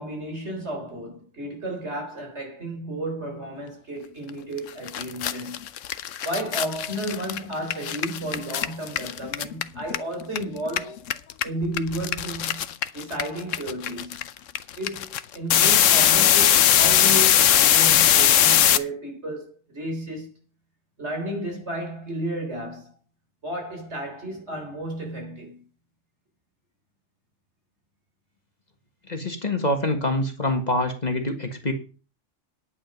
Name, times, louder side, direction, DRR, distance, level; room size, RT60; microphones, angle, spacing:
voice 1, 0.0-5.7 6.2-11.0 11.4-14.2 14.8-20.3 21.0-23.0 23.4-25.6, right 1 dB, 65° right, 4.2 m, -33 dB
sound 1, 4.6-4.7 4.9-10.4 10.7-18.8, left 10 dB, 85° left, 1.1 m, -20 dB
voice 2, 29.1-31.7, left 1 dB, 35° left, 1.7 m, -25 dB
10.0 x 8.9 x 5.4 m
omnidirectional pair, 1.3 m